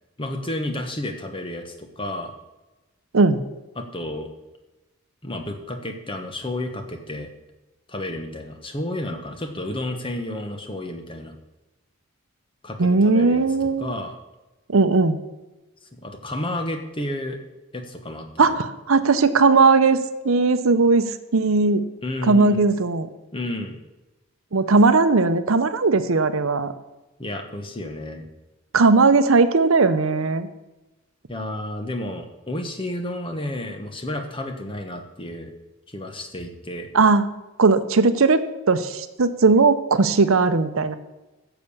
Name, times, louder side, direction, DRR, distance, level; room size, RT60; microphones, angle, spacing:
voice 1, 0.2-2.3 3.7-4.3 5.2-7.3 7.9-11.3 12.6-14.1 15.8-17.4 17.7-18.6 22.0-22.6 23.3-23.8 27.2-28.2 31.3-35.5 35.9-36.9, left 1 dB, 25° left, 5 dB, 1.2 m, -31 dB
voice 2, 12.8-13.9 14.7-15.2 18.4-20.0 20.2-21.8 22.2-23.1 24.5-26.7 28.7-30.5 36.9-37.3 37.6-41.0, right 3 dB, 70° right, 11 dB, 0.7 m, -18 dB
10.0 x 6.9 x 7.1 m, 1.1 s
head